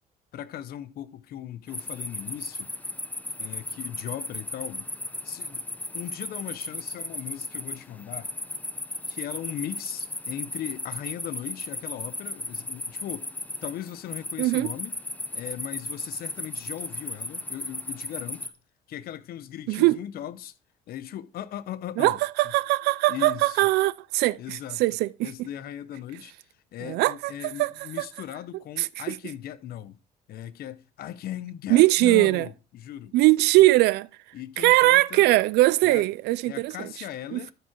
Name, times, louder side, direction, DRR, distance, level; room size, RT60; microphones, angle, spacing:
voice 1, 0.3-2.7 3.4-4.9 5.2-5.6 5.9-8.3 9.1-13.3 13.6-14.9 15.3-18.5 18.9-20.5 20.9-22.2 23.1-23.6 24.4-26.3 26.7-30.0 30.3-33.1 34.3-35.3 35.8-36.0 36.5-37.5, left 11 dB, 65° left, 0.8 m, -38 dB
sound 1, 1.7-18.5, left 2 dB, 10° left, 0.9 m, -36 dB
voice 2, 14.4-14.7 19.7-20.0 22.0-25.3 26.8-28.1 28.8-29.2 31.7-32.5 33.1-34.1 34.6-36.9 37.3-37.4, right 18 dB, 80° right, 0.4 m, -21 dB
13.0 x 4.9 x 4.5 m
cardioid pair, 110°, 17 cm